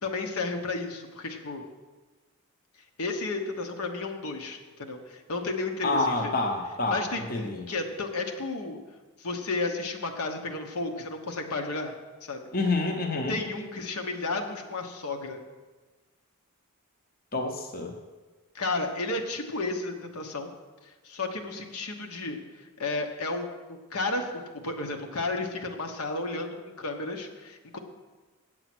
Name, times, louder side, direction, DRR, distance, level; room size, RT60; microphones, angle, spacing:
voice 1, 0.0-1.6 3.0-6.4 6.9-8.8 9.2-11.9 12.2-12.4 13.3-15.4 18.5-20.5 20.8-27.8, left 3 dB, 80° left, 3 dB, 1.1 m, -33 dB
voice 2, 5.8-7.0 7.3-7.6 12.5-13.4 17.3-17.9, left 2 dB, 40° left, 3 dB, 0.8 m, -27 dB
8.4 x 7.8 x 6.0 m, 1.3 s
head